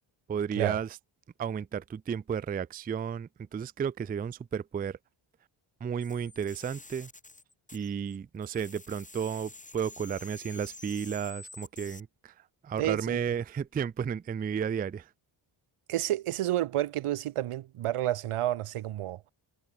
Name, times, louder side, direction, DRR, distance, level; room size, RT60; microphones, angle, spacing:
voice 1, 0.3-0.9 1.4-5.0 5.8-7.1 7.7-12.3 12.6-15.1, right 7 dB, 20° right, 0.3 m, -33 dB
sound 1, 6.0-8.2 8.4-12.0, left 2 dB, 15° left, 1.4 m, -49 dB
voice 2, 12.8-13.2 15.9-19.2, right 13 dB, 90° right, 1.4 m, -30 dB
cardioid pair, 65°, 50 cm